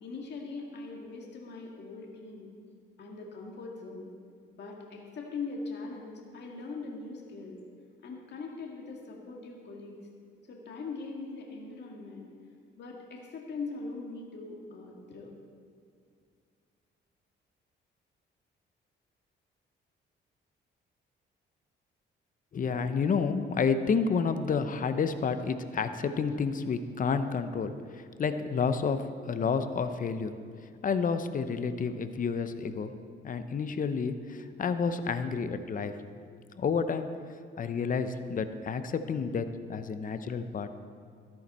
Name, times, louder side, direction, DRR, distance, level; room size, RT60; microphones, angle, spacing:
voice 1, 0.0-2.5 3.0-4.1 4.5-7.6 8.0-10.0 10.5-12.3 12.8-15.3, left 3 dB, 60° left, -1 dB, 2.0 m, -41 dB
voice 2, 22.5-30.3 30.8-32.9 33.2-37.1 37.6-40.7, left 5 dB, 45° left, 10 dB, 0.8 m, -30 dB
13.5 x 10.5 x 4.3 m, 2.2 s
cardioid pair, 90°, 20 cm